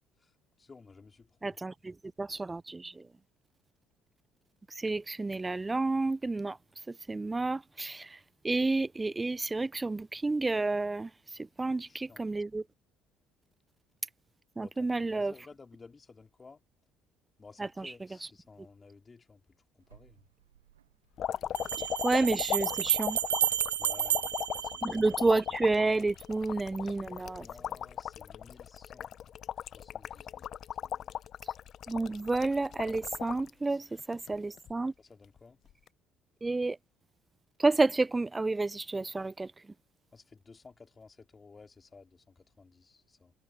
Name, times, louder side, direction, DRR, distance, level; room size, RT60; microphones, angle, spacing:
voice 1, 0.6-1.6 11.9-12.3 14.6-16.6 17.4-19.4 19.9-20.2 23.8-24.8 27.4-29.1 29.7-30.5 30.8-31.2 33.7-33.8 35.0-35.6 40.1-43.3, left 4 dB, 30° left, 3.6 m, -55 dB
voice 2, 1.4-3.0 4.8-6.6 6.9-8.2 8.4-11.1 11.6-12.6 14.6-15.3 17.6-17.9 18.2-18.3 22.0-23.2 24.8-27.5 31.9-34.9 36.4-36.8 37.6-39.5, right 3 dB, 20° right, 0.8 m, -30 dB
sound 1, 19.9-20.0 21.5-25.5, right 11 dB, 85° right, 0.8 m, -31 dB
sound 2, 21.2-33.5 34.0-34.7 35.7-35.9, left 10 dB, 50° left, 0.9 m, -38 dB
hypercardioid pair, 55°, 0 cm